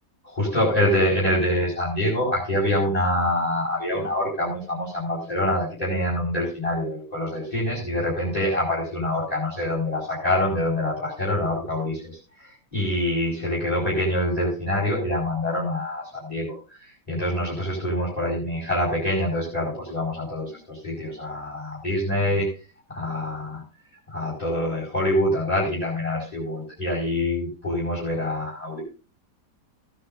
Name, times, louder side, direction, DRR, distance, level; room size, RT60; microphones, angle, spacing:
voice 1, 0.2-22.5 22.9-23.6 24.1-28.8, left 1 dB, 20° left, -5 dB, 5.1 m, -25 dB
17.5 x 10.0 x 2.6 m, 0.34 s
omnidirectional pair, 1.8 m